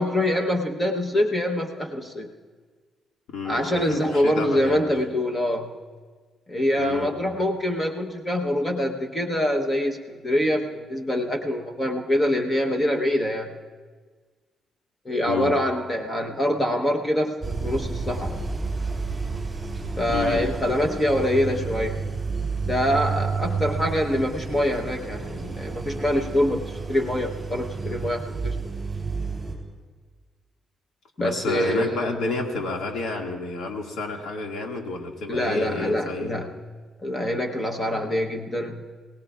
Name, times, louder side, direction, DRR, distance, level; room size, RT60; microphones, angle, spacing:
voice 1, 0.0-2.3 3.4-5.8 6.5-13.6 15.0-18.4 20.0-22.1 22.6-28.6 31.2-32.2 35.3-36.6 37.0-38.8, left 1 dB, 20° left, 2 dB, 1.0 m, -25 dB
voice 2, 3.3-4.8 6.8-7.3 15.3-15.5 20.1-20.4 31.2-36.3, left 3 dB, 80° left, 1 dB, 2.0 m, -30 dB
sound 1, 17.4-29.5, right 4 dB, 20° right, 3.6 m, -31 dB
27.5 x 17.5 x 2.4 m, 1.5 s
cardioid pair, 140°, 0 cm